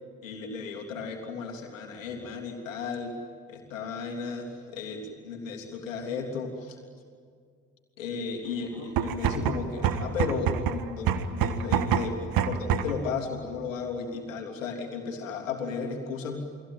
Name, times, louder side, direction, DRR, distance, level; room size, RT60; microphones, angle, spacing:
voice 1, 0.2-3.2 3.5-6.8 8.0-16.4, left 5 dB, 90° left, 1 dB, 3.4 m, -34 dB
sound 1, 8.8-13.1, right 8 dB, 60° right, 1.7 m, -27 dB
30.0 x 21.0 x 9.1 m, 2.1 s
hypercardioid pair, 50°, 38 cm